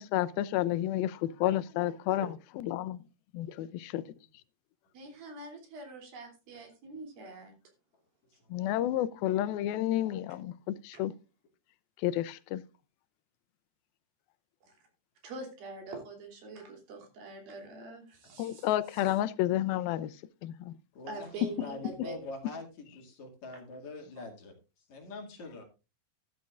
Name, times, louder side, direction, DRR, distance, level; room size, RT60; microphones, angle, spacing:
voice 1, 0.0-3.0 3.3-4.0 8.5-11.1 12.0-12.6 18.4-20.1 20.4-20.7 21.4-21.5, left 13 dB, 85° left, 2.5 m, -30 dB
voice 2, 4.9-7.5 10.9-11.0 14.7-14.8 15.2-19.0 21.1-22.1, right 2 dB, 75° right, 4.9 m, -44 dB
voice 3, 8.3-8.7 21.0-24.5 24.9-25.7, left 2 dB, 55° left, 3.4 m, -44 dB
13.5 x 12.5 x 2.4 m
omnidirectional pair, 4.2 m